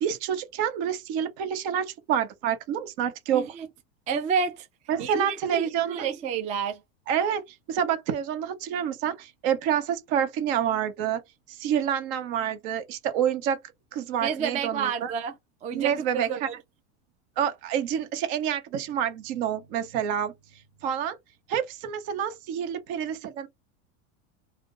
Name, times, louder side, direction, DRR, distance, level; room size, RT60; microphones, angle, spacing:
voice 1, 0.0-3.5 4.9-6.1 7.1-7.4 7.7-11.2 11.5-13.6 13.9-15.1 15.7-16.5 17.4-20.3 20.8-21.2 21.5-23.5, right 9 dB, 60° right, 0.9 m, -28 dB
voice 2, 3.3-3.7 4.1-4.6 5.0-6.8 14.2-15.3 15.6-16.5, right 6 dB, 20° right, 0.3 m, -30 dB
2.5 x 2.1 x 3.7 m
supercardioid pair, 125°, 36 cm